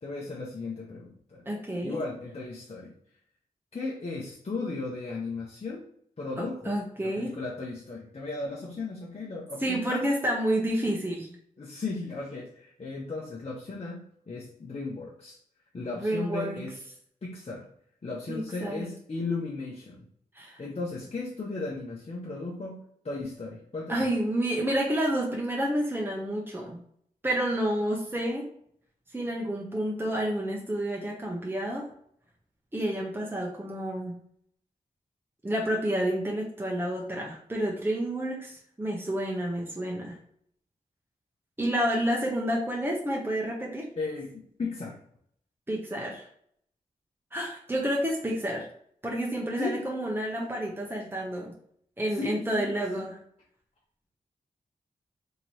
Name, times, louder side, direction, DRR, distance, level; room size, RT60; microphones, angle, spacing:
voice 1, 0.0-1.4 1.8-2.9 3.7-5.8 6.2-10.1 10.8-10.9 11.6-15.4 15.7-16.8 17.2-17.7 18.0-20.1 20.6-24.1 44.0-45.0 49.6-49.8 52.1-53.1, left 3 dB, 40° left, -4 dB, 0.9 m, -36 dB
voice 2, 1.5-2.0 6.4-7.3 9.6-11.3 16.0-16.6 18.3-18.9 20.3-20.6 23.9-26.8 27.2-28.5 29.1-31.9 32.7-34.2 35.4-40.2 41.6-43.9 45.7-46.3 47.3-48.7 49.0-51.5 52.0-53.2, right 1 dB, 15° right, -2 dB, 1.0 m, -29 dB
3.0 x 2.9 x 4.1 m, 0.66 s
cardioid pair, 45°, 16 cm